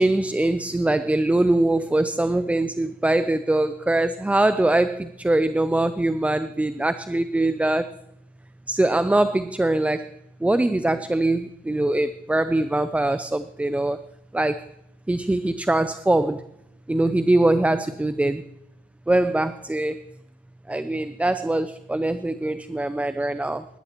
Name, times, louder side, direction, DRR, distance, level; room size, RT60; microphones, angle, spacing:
voice 1, 0.0-7.9 8.7-10.1 10.4-14.7 15.1-16.4 16.9-18.5 19.1-20.1 20.7-23.7, right 2 dB, 5° right, 13 dB, 0.4 m, -22 dB
18.0 x 12.5 x 3.0 m, 0.85 s
cardioid pair, 90°, 20 cm